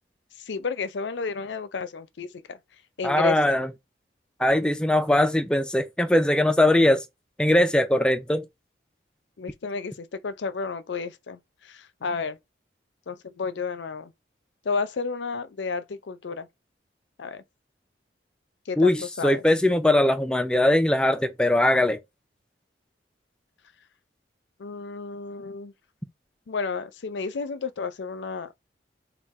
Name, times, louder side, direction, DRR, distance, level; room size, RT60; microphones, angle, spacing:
voice 1, 0.4-2.6 3.0-3.6 9.4-12.4 13.1-14.1 14.6-16.5 17.2-17.4 18.7-19.4 24.6-25.7 26.5-28.5, left 5 dB, 85° left, 0.5 m, -32 dB
voice 2, 3.0-3.7 4.4-7.0 7.4-8.4 18.8-22.0, left 1 dB, 5° left, 0.3 m, -21 dB
3.6 x 2.3 x 4.1 m
head